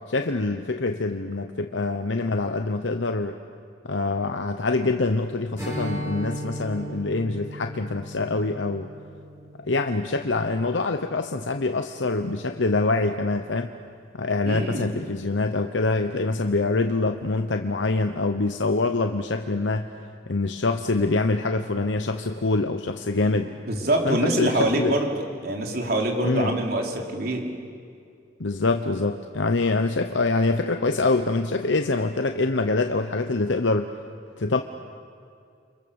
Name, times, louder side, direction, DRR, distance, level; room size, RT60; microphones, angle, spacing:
voice 1, 0.1-3.4 3.9-8.9 9.7-13.7 14.2-19.9 20.3-23.5 24.0-25.0 26.2-26.5 28.4-33.9 34.4-34.6, left 3 dB, 80° left, 6 dB, 1.0 m, -25 dB
Strum, 5.6-11.0, equal, 20° right, 7.4 m, -37 dB
voice 2, 14.4-14.9 23.2-23.4 23.6-27.5, right 1 dB, 55° right, 1 dB, 3.8 m, -25 dB
30.0 x 25.5 x 7.2 m, 2.3 s
head